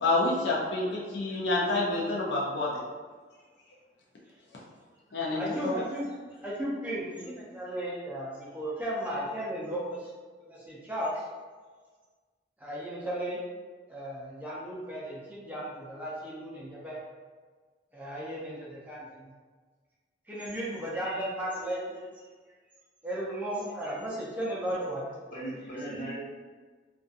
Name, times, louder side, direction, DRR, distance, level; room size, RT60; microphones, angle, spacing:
voice 1, 0.0-2.7 5.1-5.7, left 2 dB, 65° left, -4 dB, 0.5 m, -28 dB
voice 2, 5.3-6.1 6.4-10.1 10.5-11.2 12.6-13.4 13.9-17.0 17.9-19.3 20.3-22.0 23.0-25.1, right 1 dB, 10° right, -7 dB, 0.4 m, -35 dB
voice 3, 24.7-25.0 25.3-26.2, right 1 dB, 45° left, -8 dB, 0.9 m, -38 dB
2.6 x 2.3 x 2.4 m, 1.4 s
head